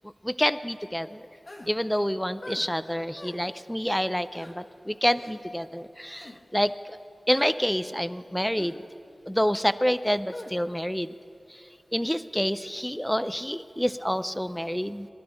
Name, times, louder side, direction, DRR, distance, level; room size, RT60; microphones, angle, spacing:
voice 1, 0.2-1.2 1.7-7.0 7.3-8.7 9.3-11.1 11.9-15.1, equal, 5° left, 13 dB, 0.4 m, -28 dB
sound 1, 1.5-1.7 2.4-2.7 3.2-3.4 4.3-4.5 5.1-5.3 6.1-6.4 7.3-7.5 8.5-8.8 10.3-10.5, left 1 dB, 45° left, 1.5 m, -43 dB
22.5 x 12.0 x 3.5 m, 2.6 s
wide cardioid pair, 80°, 0 cm